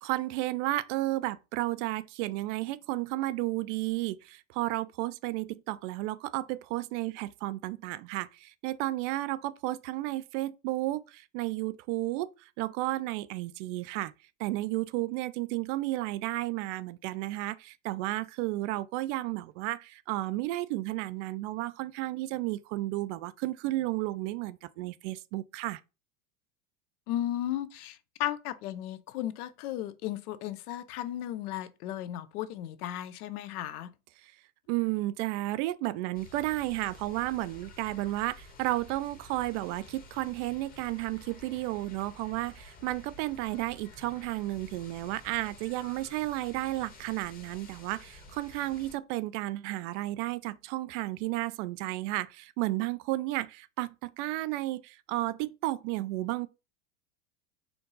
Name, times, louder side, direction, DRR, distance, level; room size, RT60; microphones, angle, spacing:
voice 1, 0.0-14.1 14.4-25.8 34.2-34.3 34.7-56.5, right 17 dB, 55° right, 0.5 m, -33 dB
voice 2, 27.1-33.9, left 12 dB, 70° left, 0.7 m, -35 dB
sound 1, 36.1-49.0, left 2 dB, 20° left, 0.9 m, -51 dB
4.6 x 2.6 x 3.9 m
supercardioid pair, 115°, 46 cm